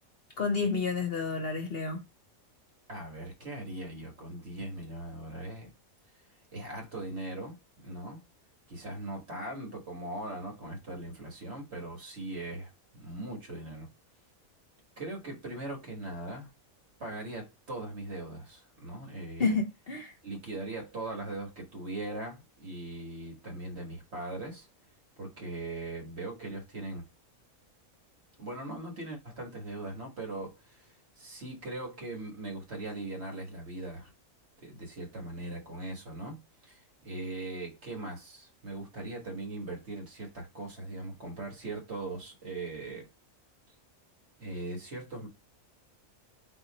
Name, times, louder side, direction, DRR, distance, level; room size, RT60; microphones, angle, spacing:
voice 1, 0.4-2.0 19.4-20.1, left 4 dB, 50° left, 0.9 m, -30 dB
voice 2, 2.9-5.7 6.5-7.6 7.8-8.2 8.7-13.9 15.0-16.5 17.0-19.6 20.2-24.7 25.2-27.1 28.4-34.1 34.6-43.1 44.4-45.3, right 2 dB, 50° right, 1.8 m, -40 dB
4.3 x 2.7 x 4.1 m
omnidirectional pair, 1.5 m